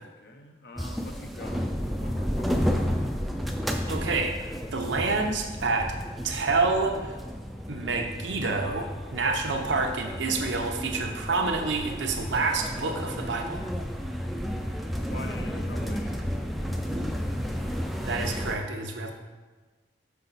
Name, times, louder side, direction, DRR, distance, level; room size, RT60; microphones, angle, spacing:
voice 1, 0.0-2.8 14.9-16.3, left 2 dB, 60° left, 4 dB, 0.6 m, -45 dB
sound 1, 0.8-18.6, equal, ahead, 0.3 m, -32 dB
voice 2, 3.9-5.9 6.2-7.2 7.7-13.6 18.0-19.1, right 3 dB, 80° right, 3 dB, 0.7 m, -28 dB
5.6 x 4.9 x 4.0 m, 1.3 s
head